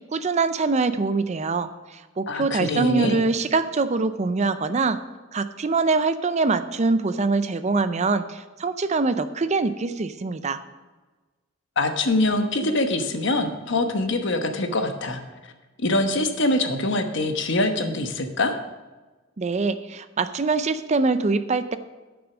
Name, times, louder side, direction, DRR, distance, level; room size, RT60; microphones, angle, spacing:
voice 1, 0.1-5.0 5.3-10.6 19.4-21.8, right 3 dB, 35° right, 12 dB, 0.5 m, -24 dB
voice 2, 2.3-3.2 11.8-15.5 15.8-18.5, left 2 dB, 60° left, 6 dB, 1.1 m, -24 dB
10.5 x 6.2 x 6.1 m, 1.2 s
head